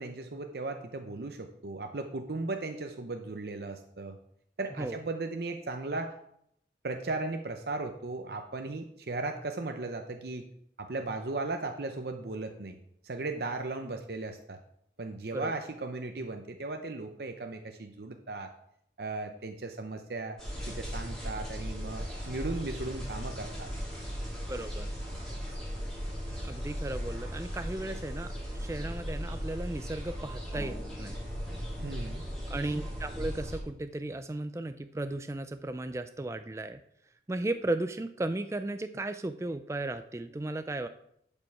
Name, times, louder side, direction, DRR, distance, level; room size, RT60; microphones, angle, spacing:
voice 1, 0.0-4.2 4.6-6.1 6.8-10.4 10.8-12.8 13.0-14.6 15.0-18.5 19.0-20.4 20.7-23.7 31.8-32.2, right 3 dB, 60° right, 5 dB, 0.7 m, -36 dB
sound 1, 20.4-33.6, equal, ahead, 3.3 m, -37 dB
voice 2, 24.5-24.9 26.4-31.2 32.5-36.8 37.3-40.9, right 2 dB, 15° right, 9 dB, 0.3 m, -35 dB
11.5 x 5.4 x 4.7 m, 0.72 s
head